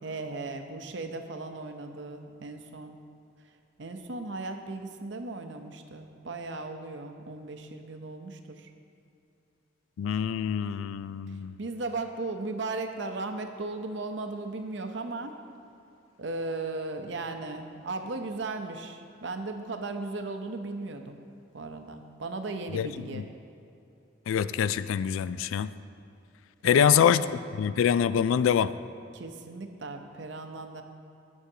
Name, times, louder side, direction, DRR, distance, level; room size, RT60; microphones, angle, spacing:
voice 1, 0.0-3.0 3.8-8.7 11.6-15.3 16.2-21.2 21.5-23.2 26.6-27.1 29.1-30.8, right 3 dB, 65° right, 6 dB, 0.7 m, -36 dB
voice 2, 10.0-11.5 22.7-23.2 24.3-25.7 26.6-27.3 27.5-28.7, left 8 dB, 90° left, 16 dB, 0.3 m, -25 dB
16.5 x 6.4 x 2.8 m, 2.7 s
head